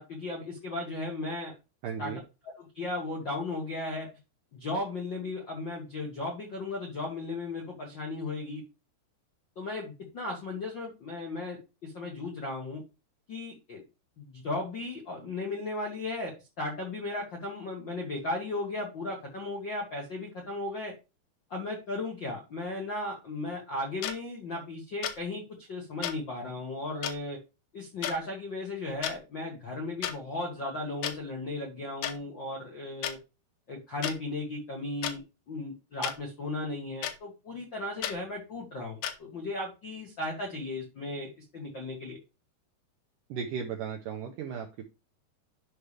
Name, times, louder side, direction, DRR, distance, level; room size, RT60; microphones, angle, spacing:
voice 1, 0.0-1.5 2.0-2.1 2.6-4.1 4.5-8.6 9.5-12.8 13.3-13.8 14.2-20.9 21.5-27.4 27.7-33.2 33.7-35.2 35.5-42.2, left 2 dB, 60° left, -2 dB, 1.2 m, -36 dB
voice 2, 1.8-2.2 43.3-44.9, right 7 dB, 80° right, 2 dB, 1.9 m, -36 dB
sound 1, 24.0-24.2 25.0-25.2 26.0-26.2 27.0-27.2 28.0-28.2 28.9-29.2 30.0-30.2 31.0-31.2 32.0-32.2 33.0-33.2 34.0-34.2 35.0-35.2 36.0-36.2 37.0-37.2 38.0-38.2 39.0-39.2, left 10 dB, 80° left, 2.8 m, -32 dB
10.5 x 5.6 x 3.3 m, 0.29 s
omnidirectional pair, 4.8 m